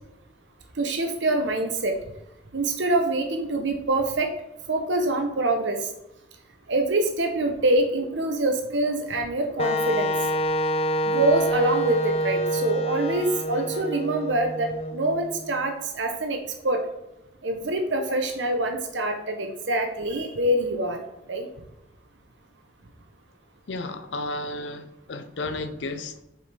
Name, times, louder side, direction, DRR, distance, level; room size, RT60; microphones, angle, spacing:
voice 1, 0.8-2.0 2.5-4.3 4.7-5.8 6.7-10.1 11.1-16.8 17.4-21.0 21.3-21.5, right 2 dB, 80° right, 4 dB, 0.9 m, -25 dB
Wind instrument woodwind instrument, 9.6-15.4, right 1 dB, 35° left, 0.5 m, -26 dB
voice 2, 23.7-26.1, left 2 dB, 80° left, 9 dB, 0.6 m, -33 dB
7.7 x 5.2 x 3.4 m, 0.90 s
head